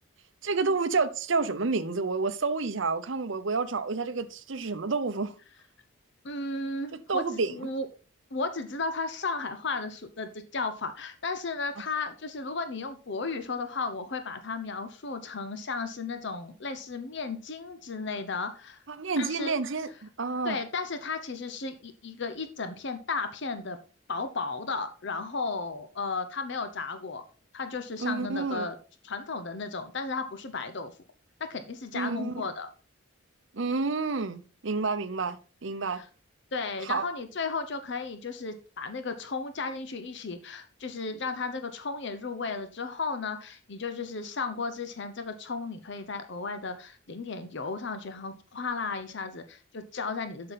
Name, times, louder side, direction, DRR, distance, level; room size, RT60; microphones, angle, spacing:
voice 1, 0.4-5.3 7.1-7.5 18.9-20.6 28.0-28.7 31.9-32.4 33.5-36.0 36.8-37.1, right 4 dB, 65° right, 0.8 m, -29 dB
voice 2, 6.2-7.9 8.3-18.8 19.2-19.5 20.4-23.8 24.1-27.2 27.5-28.7 29.0-31.0 31.4-32.7 35.9-36.1 36.5-50.5, left 4 dB, 55° left, 0.8 m, -34 dB
8.0 x 6.6 x 4.1 m
head